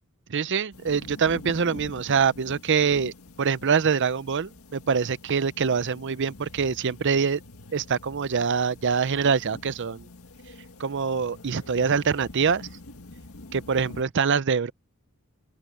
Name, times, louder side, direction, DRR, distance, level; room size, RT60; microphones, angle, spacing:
voice 1, 0.3-7.4 7.7-10.1 10.8-12.7 13.5-14.7, right 6 dB, 55° right, 0.6 m, -24 dB
sound 1, 0.7-14.0, left 2 dB, 75° left, 1.9 m, -45 dB
open air
head